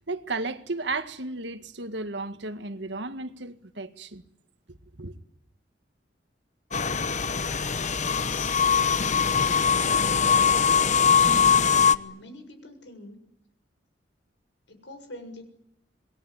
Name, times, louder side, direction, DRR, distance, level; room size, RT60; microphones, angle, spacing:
voice 1, 0.0-4.2 4.7-5.1, right 3 dB, 75° right, 1.9 m, -34 dB
sound 1, 6.7-11.9, left 6 dB, 40° left, 1.0 m, -22 dB
voice 2, 11.7-13.2 14.7-15.4, left 1 dB, 85° left, 7.0 m, -45 dB
27.5 x 22.0 x 9.8 m
head